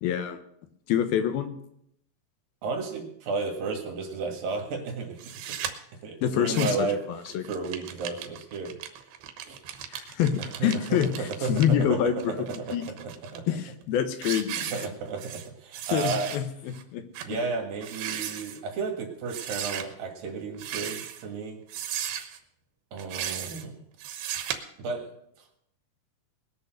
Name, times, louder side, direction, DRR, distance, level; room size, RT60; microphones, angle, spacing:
voice 1, 0.0-0.4 0.9-1.5 6.2-7.4 9.9-10.3 10.6-12.4 12.7-12.8 13.5-14.9 15.9-17.4, left 9 dB, 80° left, 9 dB, 2.9 m, -26 dB
voice 2, 2.6-5.2 5.5-5.6 6.0-7.0 7.5-8.8 9.4-9.6 10.4-13.4 14.7-16.3 17.2-21.6 22.9-23.8 24.8-25.1, right 4 dB, 70° right, 3 dB, 3.6 m, -33 dB
sound 1, 5.2-5.7 6.3-6.9 7.3-11.7 12.2-13.4 13.8-14.0 14.2-15.5 15.7-16.4 16.7-16.8 17.1-17.3 17.8-18.6 19.3-19.8 20.5-21.2 21.7-22.4 23.0-23.6 24.0-24.6, right 10 dB, 90° right, 3.0 m, -36 dB
20.0 x 6.8 x 6.5 m, 0.74 s
omnidirectional pair, 4.3 m